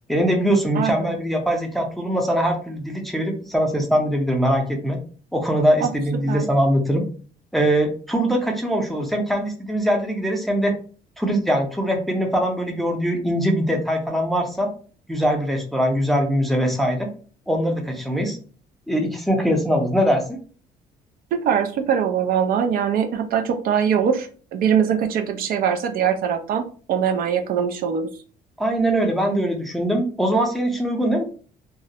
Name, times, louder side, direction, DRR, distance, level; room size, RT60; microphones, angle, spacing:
voice 1, 0.1-5.0 5.3-7.1 7.5-10.7 11.2-14.7 15.1-17.1 17.5-18.4 18.9-20.4 28.6-31.2, equal, ahead, 2 dB, 0.5 m, -22 dB
voice 2, 0.7-1.1 5.8-5.9 6.3-6.5 21.3-26.6 26.9-28.1, right 8 dB, 60° right, 6 dB, 0.4 m, -22 dB
2.3 x 2.0 x 2.7 m, 0.40 s
cardioid pair, 110°, 17 cm